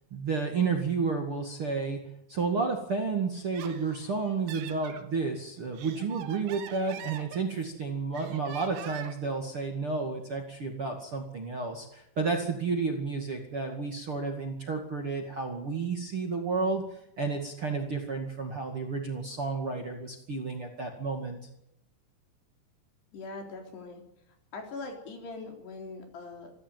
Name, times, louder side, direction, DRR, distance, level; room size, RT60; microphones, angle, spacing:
voice 1, 0.1-2.0 2.3-16.8 17.2-21.4, right 4 dB, 40° right, 2 dB, 2.3 m, -31 dB
Laughter, 3.3-5.1 5.6-7.8 8.2-9.3, right 10 dB, 85° right, 4.0 m, -44 dB
voice 2, 23.1-24.0 24.5-26.5, left 3 dB, 65° left, 3 dB, 5.8 m, -41 dB
27.0 x 14.0 x 9.3 m, 0.78 s
omnidirectional pair, 5.2 m